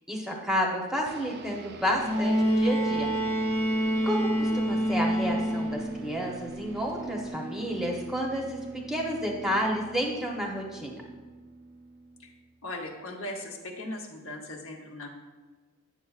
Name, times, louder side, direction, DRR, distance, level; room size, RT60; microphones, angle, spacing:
voice 1, 0.1-3.1 4.0-8.6 8.9-11.0, equal, ahead, -1 dB, 0.8 m, -30 dB
sound 1, 1.1-12.7, right 3 dB, 45° right, 0.4 m, -43 dB
Bowed string instrument, 2.0-6.0 7.3-7.4, equal, 30° left, 0.7 m, -26 dB
voice 2, 12.6-15.1, left 1 dB, 60° left, 1 dB, 0.9 m, -38 dB
9.1 x 6.9 x 2.4 m, 1.3 s
head